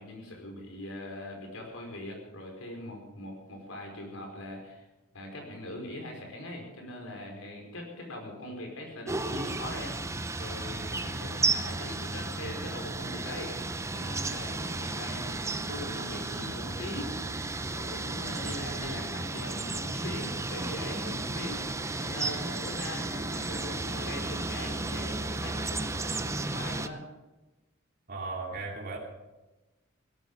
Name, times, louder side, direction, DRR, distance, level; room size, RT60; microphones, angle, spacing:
voice 1, 0.0-4.9 5.1-10.0 10.4-13.5 13.9-17.1 17.7-27.0, left 1 dB, 80° left, 2 dB, 4.9 m, -41 dB
sound 1, 9.1-26.9, right 2 dB, 15° right, 0.7 m, -33 dB
voice 2, 18.2-18.6 28.1-29.0, right 3 dB, 50° right, -1 dB, 2.6 m, -37 dB
17.0 x 12.5 x 5.5 m, 1.1 s
head